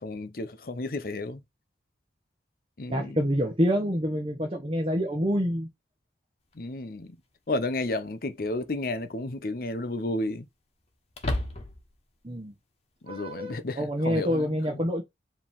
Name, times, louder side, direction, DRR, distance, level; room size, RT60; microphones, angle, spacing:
voice 1, 0.0-1.4 2.8-3.2 6.6-7.1 7.5-10.5 13.0-14.8, left 2 dB, 50° left, 0.7 m, -32 dB
voice 2, 2.9-5.7 12.2-12.5 13.1-15.0, equal, 30° right, 1.0 m, -27 dB
sound 1, 6.5-6.6 8.4-8.9 9.2-9.3 11.1-12.0, left 1 dB, 35° left, 1.1 m, -32 dB
4.9 x 3.1 x 3.5 m
head